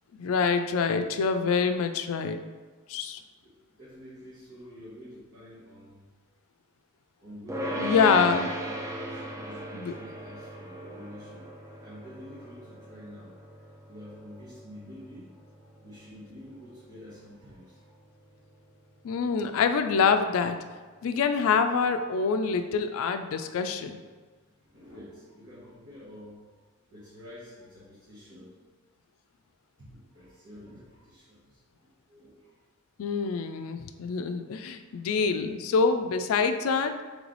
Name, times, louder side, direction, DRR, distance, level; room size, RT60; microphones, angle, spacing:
voice 1, 0.1-2.4 2.9-3.2 7.8-8.5 9.7-9.9 19.0-20.6 21.0-24.0 33.0-36.9, left 5 dB, 65° left, 8 dB, 0.3 m, -26 dB
voice 2, 3.4-6.1 7.2-8.2 8.6-11.5 11.8-13.4 13.9-18.0 22.4-22.5 24.5-26.6 26.8-28.5 29.8-32.6 33.1-33.3 36.4-36.6, left 1 dB, 55° right, -12 dB, 1.4 m, -48 dB
sound 1, 7.5-18.8, right 1 dB, 15° right, 0.4 m, -38 dB
3.3 x 3.2 x 3.9 m, 1.4 s
head